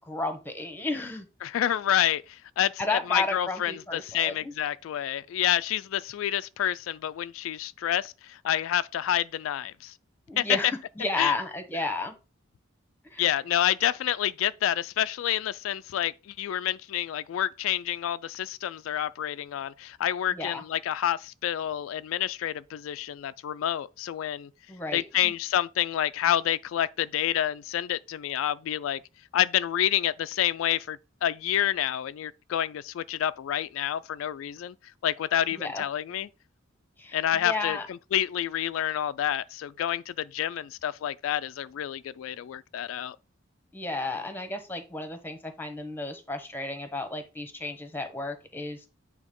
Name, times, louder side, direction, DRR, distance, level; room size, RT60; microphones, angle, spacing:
voice 1, 0.0-1.2 2.8-4.5 10.3-12.1 13.1-13.2 20.3-20.6 24.7-25.3 35.6-35.8 37.0-37.9 43.7-48.9, left 2 dB, 10° left, 1.0 m, -33 dB
voice 2, 1.4-9.9 10.4-10.5 11.2-11.4 13.2-24.5 24.9-29.0 29.3-34.7 35.0-36.3 37.1-43.2, left 11 dB, 85° left, 0.3 m, -28 dB
8.3 x 2.9 x 5.3 m
head